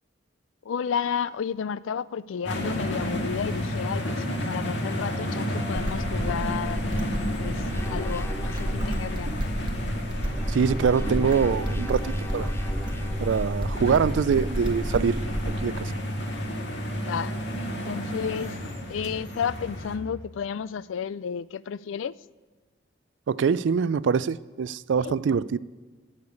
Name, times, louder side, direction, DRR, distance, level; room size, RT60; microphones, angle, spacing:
voice 1, 0.7-6.8 7.4-9.4 17.0-17.3 17.6-18.6 18.9-22.2 25.0-25.1, left 7 dB, 90° left, 0.4 m, -32 dB
sound 1, 2.4-20.0, equal, 70° left, 1.8 m, -31 dB
sound 2, 5.8-15.8, equal, 25° right, 1.2 m, -31 dB
sound 3, 7.7-9.3 10.0-13.7, left 1 dB, 15° left, 0.5 m, -42 dB
voice 2, 10.5-12.5 13.2-15.2 15.6-16.0 23.3-25.6, right 6 dB, 70° right, 0.3 m, -24 dB
15.0 x 6.7 x 9.4 m
head